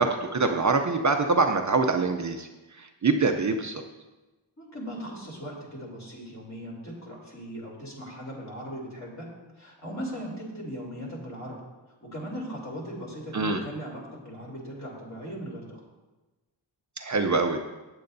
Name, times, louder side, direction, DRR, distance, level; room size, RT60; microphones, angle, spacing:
voice 1, 0.0-3.8 13.3-13.6 17.0-17.6, right 3 dB, 40° right, 5 dB, 0.6 m, -25 dB
voice 2, 4.6-11.6 12.0-15.8, equal, 40° left, -3 dB, 3.2 m, -38 dB
15.0 x 8.8 x 2.7 m, 1.1 s
wide cardioid pair, 135°, 44 cm